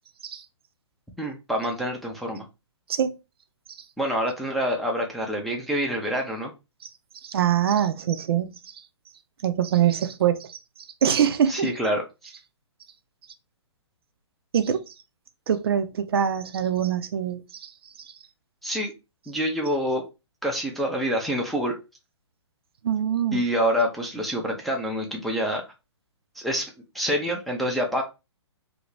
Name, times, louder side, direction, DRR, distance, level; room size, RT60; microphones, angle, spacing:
voice 1, 1.2-2.4 4.0-6.5 11.5-12.3 18.6-18.9 19.3-20.0 20.4-21.8 23.3-25.6 26.4-26.7 26.9-28.0, equal, ahead, 0.4 m, -26 dB
voice 2, 7.2-8.6 9.4-10.6 11.0-11.7 14.5-14.8 15.5-17.7 22.8-23.4, right 9 dB, 55° right, 0.5 m, -24 dB
2.8 x 2.7 x 3.1 m
figure-of-eight pair, 130°, 15 cm